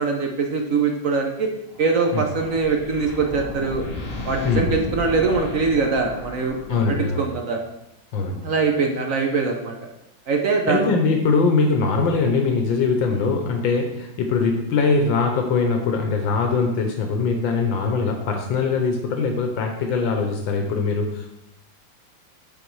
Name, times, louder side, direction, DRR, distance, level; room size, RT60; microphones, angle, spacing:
voice 1, 0.0-1.5 1.8-3.8 4.3-6.5 6.9-7.6 8.4-9.7 10.3-10.9, right 4 dB, 60° right, 3 dB, 0.9 m, -22 dB
sound 1, 1.7-7.2, left 2 dB, 40° left, 1.1 m, -34 dB
voice 2, 6.7-7.3 8.1-8.4 10.7-21.3, left 4 dB, 80° left, 4 dB, 1.6 m, -22 dB
9.1 x 3.8 x 4.7 m, 0.90 s
omnidirectional pair, 2.1 m